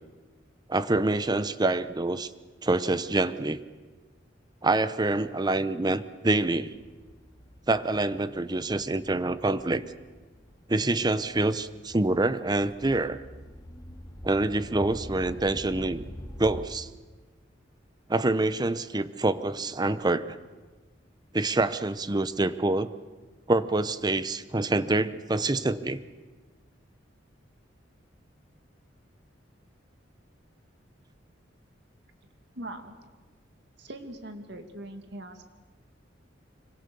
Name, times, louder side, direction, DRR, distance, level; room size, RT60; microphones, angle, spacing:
voice 1, 0.7-2.3 2.6-3.6 4.6-6.7 7.7-9.8 10.7-13.2 14.2-16.1 16.4-16.9 18.1-20.4 21.3-22.9 23.5-26.0, right 2 dB, 20° right, 14 dB, 0.8 m, -26 dB
sound 1, 6.5-16.6, equal, 20° left, 2.0 m, -46 dB
voice 2, 32.5-33.0 33.8-35.4, right 1 dB, 65° right, 6 dB, 2.3 m, -41 dB
25.5 x 24.0 x 6.9 m, 1.3 s
head